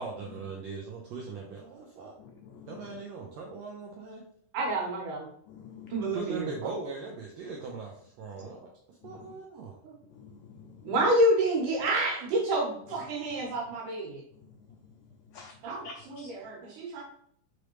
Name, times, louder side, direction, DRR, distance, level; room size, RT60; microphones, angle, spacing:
voice 1, 0.0-2.1 2.7-4.3 6.1-9.8, right 4 dB, 90° right, -1 dB, 1.5 m, -40 dB
voice 2, 2.2-3.0 5.5-6.0 8.4-8.5 9.0-9.3 10.1-10.9 14.3-14.8 15.3-15.5 15.8-16.3, left 5 dB, 90° left, 2 dB, 1.6 m, -49 dB
voice 3, 4.5-5.3 5.9-6.5 9.8-10.0 10.8-14.2 15.6-17.0, right 1 dB, 70° right, -1 dB, 2.7 m, -28 dB
5.2 x 3.2 x 3.1 m, 0.64 s
omnidirectional pair, 3.8 m